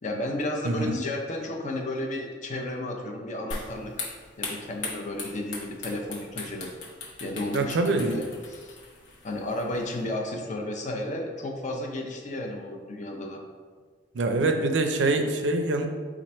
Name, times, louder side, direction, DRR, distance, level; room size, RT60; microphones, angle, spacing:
voice 1, 0.0-4.1 4.4-6.7 7.2-8.8 9.2-13.4, left 1 dB, 40° left, 2 dB, 0.6 m, -33 dB
voice 2, 0.6-1.0 7.5-8.2 14.1-15.9, right 2 dB, 70° right, 5 dB, 0.4 m, -24 dB
sound 1, 3.5-10.1, left 3 dB, 75° left, 0.9 m, -40 dB
4.4 x 2.5 x 4.2 m, 1.5 s
head